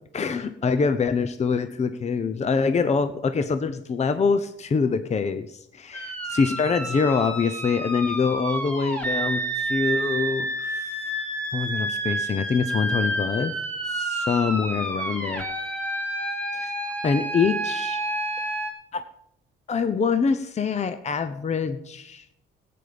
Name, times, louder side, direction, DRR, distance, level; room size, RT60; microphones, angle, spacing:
voice 1, 0.1-10.9 11.5-13.5 13.9-15.5 16.5-16.7 17.0-18.0 18.9-19.0 19.7-22.2, left 5 dB, 35° left, 10 dB, 0.8 m, -25 dB
sound 1, 5.9-18.7, right 1 dB, 10° left, 3.6 m, -29 dB
15.5 x 8.7 x 5.1 m, 0.78 s
cardioid pair, 90°, 20 cm